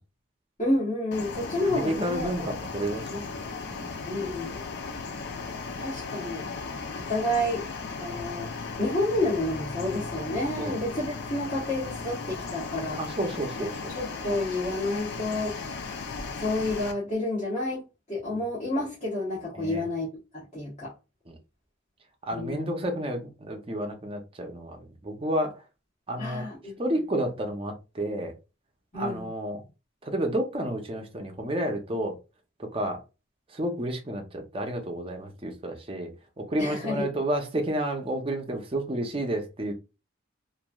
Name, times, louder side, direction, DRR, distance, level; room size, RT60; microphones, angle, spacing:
voice 1, 0.6-2.5 3.1-3.2 4.0-4.6 5.8-6.5 7.1-7.7 8.0-13.0 13.9-15.7 16.4-17.8 18.1-20.1 20.5-20.9 22.3-22.7 26.2-26.8 28.9-29.3 36.6-37.0, left 1 dB, 30° left, 1.0 m, -30 dB
sound 1, 1.1-16.9, left 4 dB, 50° left, 0.4 m, -36 dB
voice 2, 1.6-3.3 3.7-4.0 10.6-10.8 13.0-13.9 15.3-15.4 18.3-18.4 19.6-19.9 21.3-21.4 22.3-25.6 26.1-26.4 26.8-28.3 28.9-29.6 30.0-32.2 32.6-33.0 33.5-36.1 36.4-39.7, right 1 dB, 25° right, 0.5 m, -31 dB
3.0 x 2.5 x 2.2 m
head